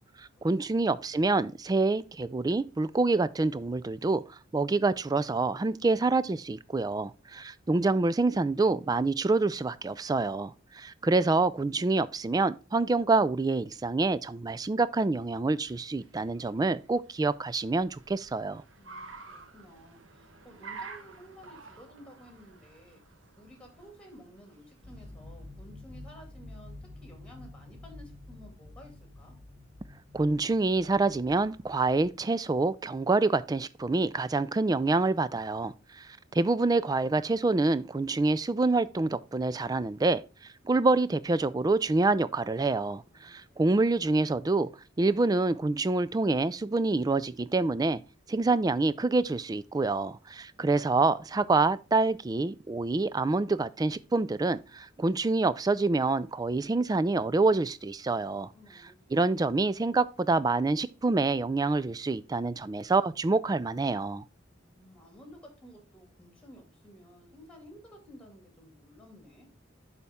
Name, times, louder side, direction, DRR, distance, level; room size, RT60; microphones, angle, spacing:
voice 1, 0.2-18.6 30.1-40.2 40.7-44.7 45.0-48.0 48.3-58.5 59.1-64.2, right 3 dB, 20° right, 0.3 m, -27 dB
Car, 15.5-25.6, right 4 dB, 85° right, 1.2 m, -50 dB
voice 2, 18.8-23.0 23.4-29.3 43.1-43.9 58.1-59.4 64.5-69.5, equal, 5° left, 2.4 m, -53 dB
sound 1, 24.8-32.2, left 2 dB, 45° right, 4.3 m, -49 dB
11.0 x 4.2 x 3.5 m
head